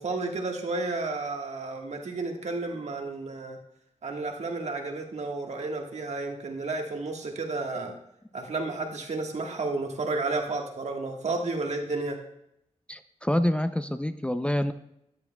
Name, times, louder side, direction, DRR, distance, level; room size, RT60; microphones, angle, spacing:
voice 1, 0.0-3.6 4.0-7.9 8.3-12.2, right 3 dB, 70° right, 2 dB, 1.4 m, -32 dB
voice 2, 12.9-14.7, left 1 dB, 10° left, 10 dB, 0.4 m, -27 dB
13.0 x 11.0 x 2.2 m, 0.80 s
wide cardioid pair, 90°, 12 cm